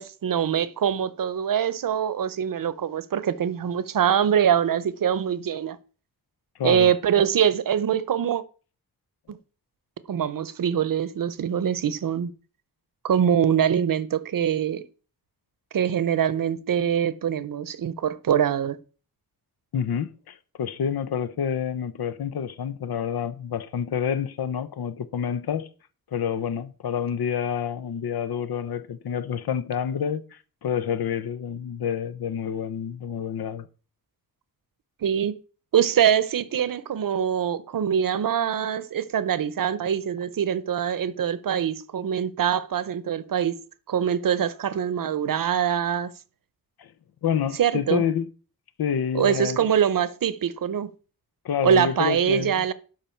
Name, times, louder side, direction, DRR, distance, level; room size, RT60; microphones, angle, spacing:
voice 1, 0.0-5.8 6.6-8.4 9.3-9.4 10.1-12.3 13.0-14.8 15.7-18.8 35.0-35.4 35.7-43.6 43.9-46.1 47.6-48.0 49.1-50.9 51.6-52.7, right 8 dB, 65° right, 0.7 m, -24 dB
voice 2, 6.6-6.9 19.7-25.7 26.1-33.7 46.8-46.9 47.2-48.3 48.8-49.6 51.4-52.6, left 8 dB, 90° left, 0.7 m, -28 dB
12.5 x 5.3 x 4.4 m
wide cardioid pair, 165°, 37 cm